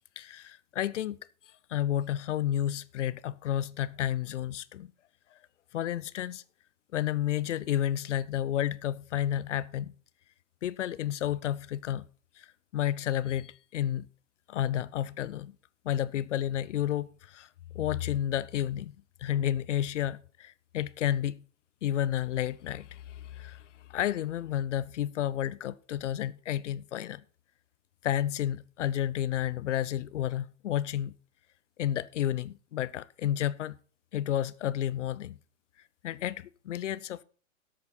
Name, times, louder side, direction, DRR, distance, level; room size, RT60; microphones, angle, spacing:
voice 1, 0.2-1.2 1.7-4.9 5.7-6.4 6.9-9.9 10.6-12.1 12.4-12.5 12.7-14.1 14.5-15.5 15.8-17.5 17.7-18.9 19.2-21.4 21.8-23.6 23.9-27.2 28.0-31.2 31.8-33.8 34.1-35.4 36.0-37.2, left 11 dB, 65° left, 0.8 m, -31 dB
12.5 x 8.4 x 4.4 m
hypercardioid pair, 135°, 39 cm